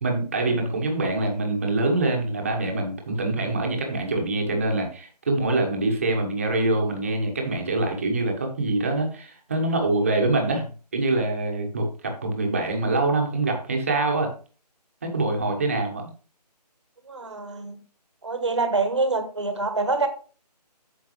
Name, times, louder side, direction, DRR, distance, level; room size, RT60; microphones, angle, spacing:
voice 1, 0.0-10.6 10.9-14.3 15.0-16.1, right 2 dB, 20° right, 2 dB, 1.2 m, -25 dB
voice 2, 17.1-17.8 18.2-20.1, right 3 dB, 45° right, 8 dB, 1.3 m, -25 dB
9.3 x 6.8 x 3.2 m, 0.38 s
figure-of-eight pair, 175°, 21 cm